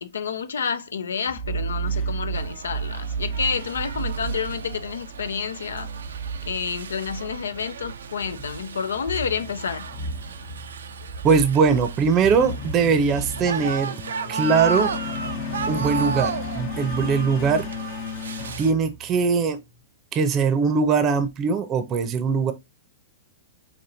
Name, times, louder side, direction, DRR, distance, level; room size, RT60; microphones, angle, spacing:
voice 1, 0.0-5.9 6.5-9.9, left 6 dB, 85° left, 0.5 m, -29 dB
sound 1, 1.3-19.4, right 1 dB, 55° left, 0.9 m, -33 dB
sound 2, 2.3-18.7, right 6 dB, 85° right, 0.3 m, -34 dB
voice 2, 11.2-14.0 14.3-14.9 15.7-17.7 18.6-19.6 20.1-22.5, right 5 dB, 30° right, 0.6 m, -21 dB
4.3 x 2.9 x 2.6 m
hypercardioid pair, 125°, 0 cm